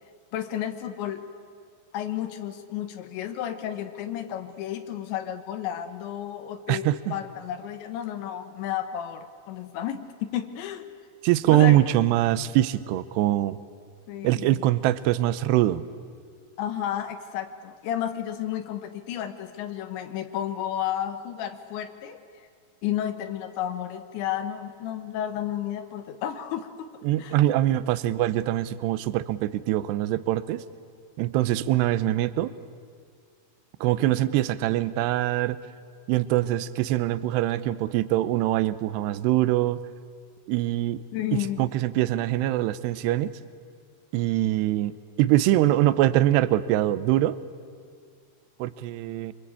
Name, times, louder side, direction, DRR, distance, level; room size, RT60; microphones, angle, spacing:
voice 1, 0.3-1.2 1.9-6.8 7.1-10.9 11.5-11.8 14.1-14.6 16.6-22.2 22.8-26.9 27.2-27.4 41.1-41.7, left 10 dB, 80° left, 8 dB, 3.5 m, -32 dB
voice 2, 6.7-7.2 11.2-13.6 14.2-15.9 27.0-30.6 31.2-32.5 33.8-35.6 36.1-39.8 40.5-41.0 41.3-43.3 44.1-44.9 45.2-47.4 48.6-49.3, right 14 dB, 75° right, 15 dB, 2.7 m, -23 dB
26.5 x 24.5 x 8.5 m, 2.2 s
omnidirectional pair, 5.2 m